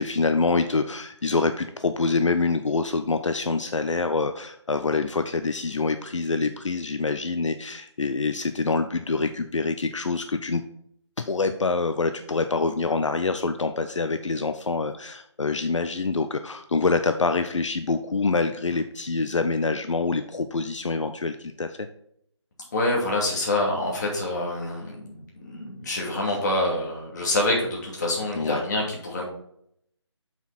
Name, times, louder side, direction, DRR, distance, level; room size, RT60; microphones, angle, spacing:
voice 1, 0.0-10.6 11.2-21.9 28.4-28.6, left 3 dB, 80° left, 9 dB, 0.6 m, -26 dB
voice 2, 22.7-29.2, left 1 dB, 35° left, -2 dB, 2.5 m, -26 dB
6.9 x 6.0 x 4.2 m, 0.72 s
figure-of-eight pair, 160°, 15 cm